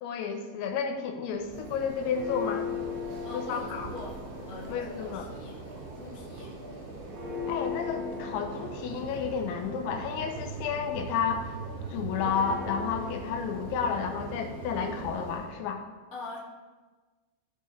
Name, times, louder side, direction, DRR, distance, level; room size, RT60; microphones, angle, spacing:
voice 1, 0.0-2.7 3.3-3.9 4.7-5.3 7.5-11.6 11.9-15.8, left 6 dB, 90° left, 4 dB, 3.2 m, -31 dB
Church bell, 1.3-15.6, left 1 dB, 80° right, 4.9 m, -38 dB
voice 2, 3.1-4.1 4.4-5.5 5.9-6.5 16.1-16.4, left 2 dB, 45° left, -5 dB, 1.1 m, -43 dB
15.5 x 5.5 x 3.4 m, 1.3 s
omnidirectional pair, 5.2 m